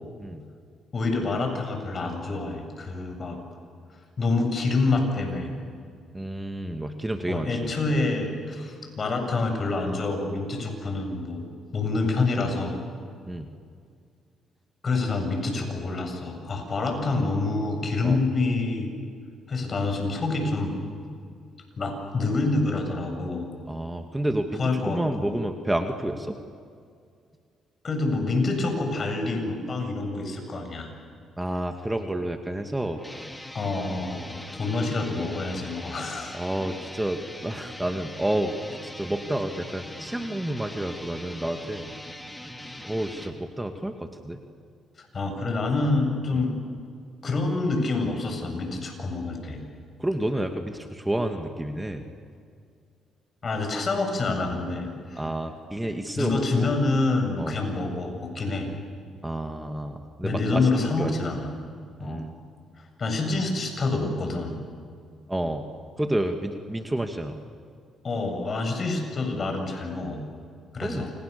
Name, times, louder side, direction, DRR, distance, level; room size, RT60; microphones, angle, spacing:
voice 1, 0.9-3.4 4.2-5.6 7.3-11.5 11.7-12.8 14.8-18.9 19.5-20.8 21.8-23.5 24.6-25.3 27.8-30.9 33.5-36.4 45.0-46.5 47.2-49.6 53.4-55.2 56.2-58.7 60.2-61.5 62.0-62.2 63.0-64.6 68.0-70.2 70.7-71.1, left 3 dB, 45° left, 4 dB, 7.7 m, -27 dB
voice 2, 6.1-7.7 13.3-13.5 17.1-17.2 18.0-18.2 23.7-26.4 31.4-33.0 34.1-34.3 36.3-38.5 38.8-41.9 42.8-44.4 46.4-46.5 50.0-52.0 55.2-56.7 57.4-57.6 59.2-61.3 62.0-62.3 65.3-65.6 66.0-67.4 70.8-71.1, right 1 dB, 10° right, 5 dB, 2.3 m, -30 dB
sound 1, 32.9-43.3, left 1 dB, 10° left, 3.4 m, -41 dB
29.0 x 28.5 x 7.0 m, 2.2 s
supercardioid pair, 75°, 0 cm